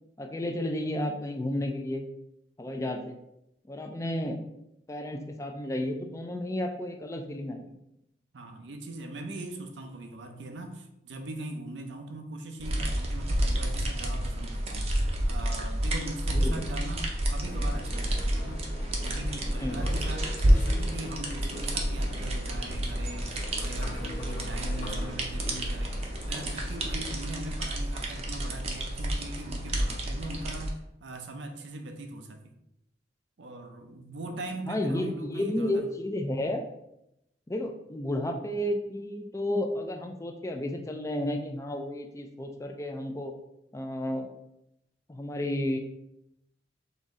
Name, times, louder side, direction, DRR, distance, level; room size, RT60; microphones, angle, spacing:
voice 1, 0.2-2.0 2.6-3.2 3.7-4.4 4.9-7.6 16.3-16.6 19.6-19.9 34.7-36.7 37.5-43.3 43.7-44.3 45.1-45.8, left 1 dB, 15° left, 3 dB, 0.4 m, -32 dB
voice 2, 8.3-14.9 15.3-18.6 19.0-26.0 26.3-32.5 33.4-35.9, right 2 dB, 80° right, 5 dB, 0.6 m, -40 dB
sound 1, 12.6-30.7, right 1 dB, 35° right, 0.6 m, -29 dB
sound 2, 17.4-27.0, left 2 dB, 50° left, 1.0 m, -44 dB
4.0 x 3.1 x 3.6 m, 0.82 s
head